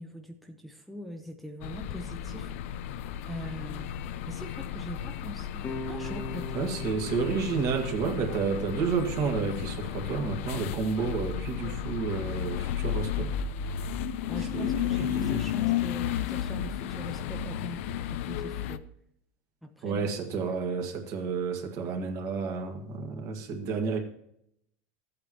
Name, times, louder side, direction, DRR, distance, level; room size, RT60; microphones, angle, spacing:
voice 1, 0.0-2.8 3.3-3.9 4.3-6.7 14.3-18.8 19.6-20.1, equal, ahead, 0.8 m, -42 dB
sound 1, 1.6-18.8, left 9 dB, 80° left, 0.6 m, -33 dB
sound 2, 5.6-10.7, left 1 dB, 25° left, 1.2 m, -43 dB
voice 2, 6.5-13.4 14.5-15.4 19.8-24.0, right 5 dB, 50° right, 1.8 m, -31 dB
14.0 x 8.7 x 3.0 m
supercardioid pair, 145°, 7 cm